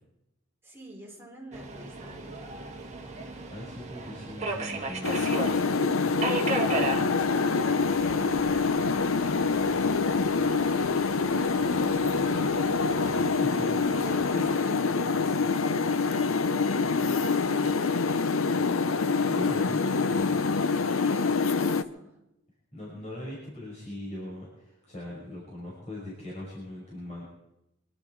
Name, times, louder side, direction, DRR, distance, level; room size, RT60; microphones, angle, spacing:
voice 1, 0.6-2.4 7.2-11.1 11.4-12.5 13.9-18.3 20.9-22.2, right 1 dB, 10° right, -2 dB, 4.0 m, -47 dB
Subway metro underground, 1.5-14.5, right 3 dB, 35° right, 1.8 m, -37 dB
voice 2, 3.5-5.6 13.0-13.9 14.3-14.6 18.9-20.5 22.7-27.3, left 1 dB, 35° left, -5 dB, 5.7 m, -40 dB
sound 1, 5.0-21.8, left 4 dB, 85° left, 0.8 m, -26 dB
24.5 x 12.0 x 4.7 m, 0.87 s
head